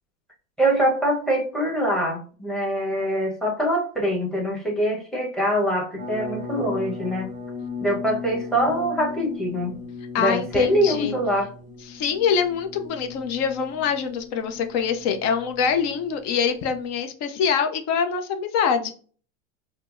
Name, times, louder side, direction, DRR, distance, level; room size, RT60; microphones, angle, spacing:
voice 1, 0.6-7.3 7.8-9.8 10.2-11.5, equal, ahead, -1 dB, 0.9 m, -24 dB
sound 1, 6.0-16.9, left 4 dB, 20° right, 0.6 m, -37 dB
voice 2, 10.1-11.2 11.9-18.9, left 6 dB, 40° left, 7 dB, 0.6 m, -24 dB
4.3 x 2.0 x 2.5 m, 0.41 s
supercardioid pair, 120°, 40 cm